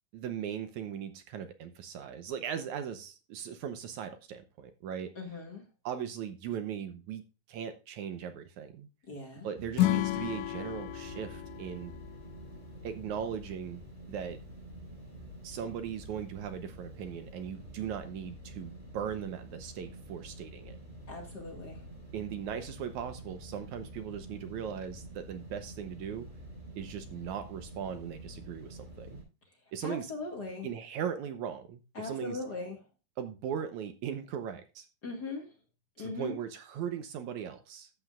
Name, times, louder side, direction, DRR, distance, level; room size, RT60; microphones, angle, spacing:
voice 1, 0.1-5.1 5.9-7.2 7.5-8.9 9.4-11.9 12.8-13.8 14.1-14.4 15.4-20.8 22.1-26.3 26.8-29.2 29.7-30.1 30.6-32.4 33.2-34.9 36.0-37.9, right 8 dB, 70° right, 9 dB, 2.1 m, -38 dB
voice 2, 5.2-5.6 9.1-9.5 21.1-21.8 29.8-30.7 31.9-32.8 35.0-35.4 36.0-36.4, left 3 dB, 35° left, 1 dB, 2.0 m, -39 dB
sound 1, 9.6-29.2, right 1 dB, 15° right, 4.7 m, -48 dB
Acoustic guitar / Strum, 9.7-13.0, left 15 dB, 85° left, 1.5 m, -32 dB
13.5 x 8.7 x 2.4 m, 0.31 s
omnidirectional pair, 3.8 m